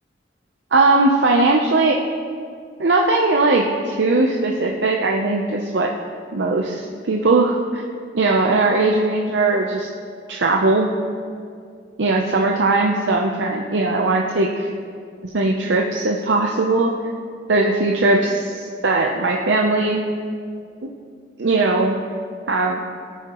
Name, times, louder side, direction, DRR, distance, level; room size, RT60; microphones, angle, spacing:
voice 1, 0.7-2.0 2.8-5.9 6.3-7.8 8.1-9.9 10.3-10.9 12.0-14.7 15.3-16.9 17.5-20.0 20.8-20.9 21.4-22.0 22.5-22.9, right 2 dB, 80° right, 0 dB, 0.7 m, -19 dB
18.0 x 9.2 x 3.0 m, 2.2 s
head